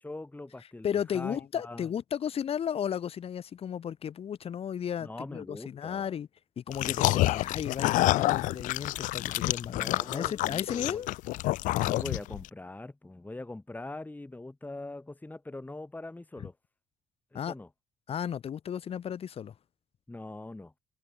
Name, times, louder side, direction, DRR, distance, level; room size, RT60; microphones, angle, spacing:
voice 1, 0.0-1.8 5.0-6.1 9.7-11.0 11.7-16.5 17.3-17.7 20.1-20.7, left 2 dB, 10° left, 1.5 m, -42 dB
voice 2, 0.8-6.3 6.6-11.1 16.4-16.5 17.3-17.5 18.1-19.5, left 8 dB, 45° left, 1.0 m, -34 dB
sound 1, 6.7-12.5, left 18 dB, 65° left, 1.2 m, -28 dB
hypercardioid pair, 50°, 14 cm